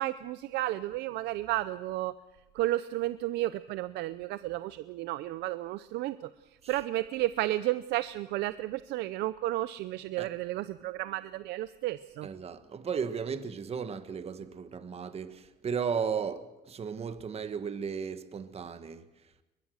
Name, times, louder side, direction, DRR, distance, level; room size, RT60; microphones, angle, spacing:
voice 1, 0.0-2.1 2.5-6.3 6.7-12.3, right 16 dB, 85° right, 0.6 m, -32 dB
voice 2, 12.2-19.4, right 6 dB, 35° right, 1.4 m, -35 dB
22.0 x 21.5 x 6.5 m
cardioid pair, 110°, 17 cm